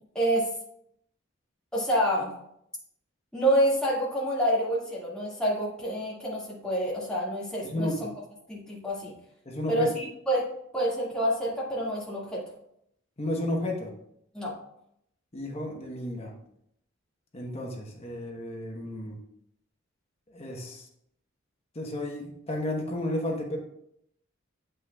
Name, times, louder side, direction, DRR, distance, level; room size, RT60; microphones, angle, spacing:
voice 1, 0.2-0.5 1.7-2.3 3.3-8.1 8.5-9.1 9.7-10.5 10.7-12.4 14.3-14.5, right 1 dB, 5° left, -6 dB, 1.8 m, -27 dB
voice 2, 7.6-8.1 9.4-9.9 13.2-13.9 15.3-16.3 17.3-19.2 20.3-20.8 21.7-23.6, left 1 dB, 30° left, 0 dB, 1.0 m, -32 dB
8.1 x 5.5 x 2.3 m, 0.74 s
head